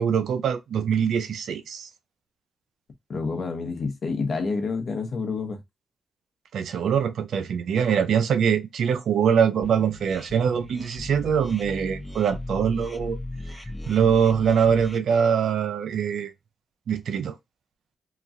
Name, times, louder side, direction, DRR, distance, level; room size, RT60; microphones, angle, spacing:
voice 1, 0.0-1.9 6.5-13.2 13.9-16.3 16.9-17.4, right 7 dB, 80° right, 0.4 m, -23 dB
voice 2, 3.1-5.6, left 4 dB, 65° left, 1.0 m, -28 dB
sound 1, 9.6-15.0, left 1 dB, 20° left, 0.7 m, -37 dB
3.0 x 2.3 x 2.5 m
supercardioid pair, 50°, 0 cm